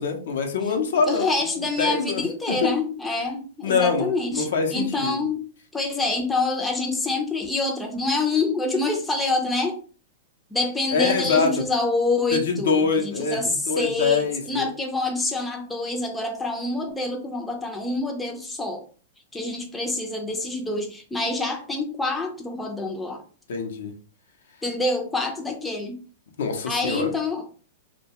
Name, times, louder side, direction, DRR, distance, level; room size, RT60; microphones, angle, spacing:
voice 1, 0.0-1.3 1.8-2.7 3.6-5.2 10.9-11.5 12.3-14.7 23.5-23.9 26.4-27.1, left 5 dB, 75° left, 4 dB, 0.6 m, -24 dB
voice 2, 1.1-5.4 5.7-9.8 10.5-12.8 13.0-18.8 19.3-23.2 24.6-26.0 26.7-27.5, left 3 dB, 10° left, 2 dB, 0.5 m, -26 dB
2.2 x 2.2 x 2.7 m, 0.40 s
hypercardioid pair, 120°, 0 cm